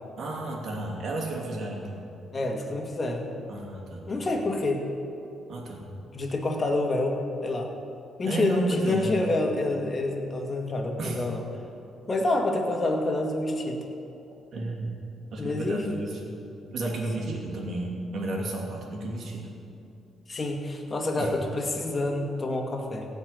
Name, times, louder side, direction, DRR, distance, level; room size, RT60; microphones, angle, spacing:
voice 1, 0.2-2.0 3.5-4.3 5.5-5.8 8.2-9.2 11.0-11.2 14.5-14.9 15.3-16.3 16.7-19.5 21.2-21.3, right 2 dB, 60° right, -1 dB, 2.9 m, -32 dB
voice 2, 2.3-3.3 4.1-4.9 6.1-7.7 8.2-11.4 12.1-13.8 15.4-16.0 17.2-17.4 20.3-23.1, left 2 dB, 30° left, 1 dB, 2.1 m, -28 dB
16.0 x 5.5 x 9.5 m, 2.8 s
cardioid pair, 90°, 0 cm